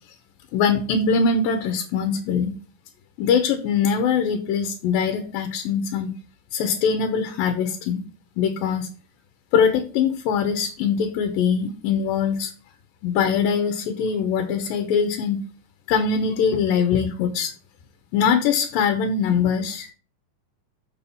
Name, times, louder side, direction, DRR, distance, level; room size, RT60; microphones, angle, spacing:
voice 1, 0.5-2.6 3.2-6.1 6.5-8.0 8.4-8.9 9.5-12.5 13.0-15.4 15.9-17.5 18.1-19.9, left 6 dB, 85° left, 7 dB, 2.6 m, -22 dB
7.0 x 6.6 x 5.6 m, 0.41 s
omnidirectional pair, 4.0 m